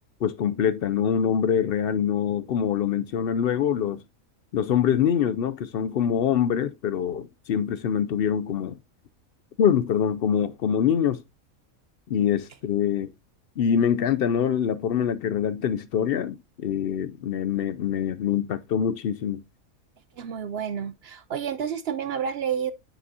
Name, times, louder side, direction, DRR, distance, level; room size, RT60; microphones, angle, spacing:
voice 1, 0.2-4.0 4.5-8.8 9.6-11.2 12.1-13.1 13.6-19.4, left 8 dB, 65° left, 0.5 m, -24 dB
voice 2, 20.2-22.7, right 8 dB, 65° right, 0.7 m, -30 dB
9.5 x 5.9 x 2.7 m
omnidirectional pair, 1.5 m